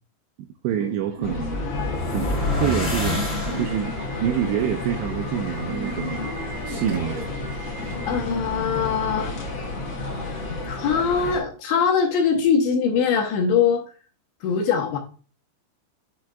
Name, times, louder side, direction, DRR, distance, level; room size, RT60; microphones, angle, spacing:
voice 1, 0.4-1.5 2.1-3.2 3.6-3.9 4.2-6.2 6.7-7.2, right 10 dB, 85° right, 5 dB, 2.5 m, -26 dB
Subway metro underground / Alarm, 0.7-10.5, right 2 dB, 70° right, 1.3 m, -39 dB
sound 1, 1.2-11.4, left 3 dB, 50° left, 2.2 m, -31 dB
sound 2, 1.3-4.1, left 2 dB, 20° left, 2.0 m, -27 dB
voice 2, 8.1-9.3 10.7-13.8 14.4-15.0, left 6 dB, 80° left, 0 dB, 2.9 m, -22 dB
7.4 x 7.3 x 2.3 m, 0.37 s
omnidirectional pair, 5.6 m